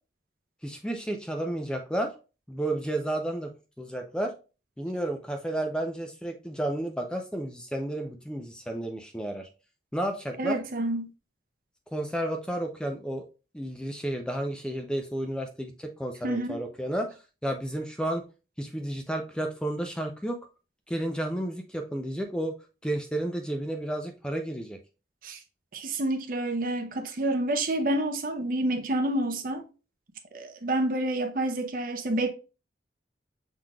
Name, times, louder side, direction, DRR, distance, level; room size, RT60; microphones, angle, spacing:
voice 1, 0.6-2.1 2.5-3.5 3.8-4.3 4.8-9.5 9.9-10.6 11.9-13.2 13.5-17.1 17.4-18.2 18.6-20.4 20.9-22.5 22.8-24.8, right 1 dB, 5° left, 0.4 m, -32 dB
voice 2, 10.4-11.1 16.2-16.6 25.2-25.4 25.7-29.6 30.3-32.3, right 1 dB, 45° right, 0.7 m, -28 dB
6.2 x 3.8 x 2.2 m
head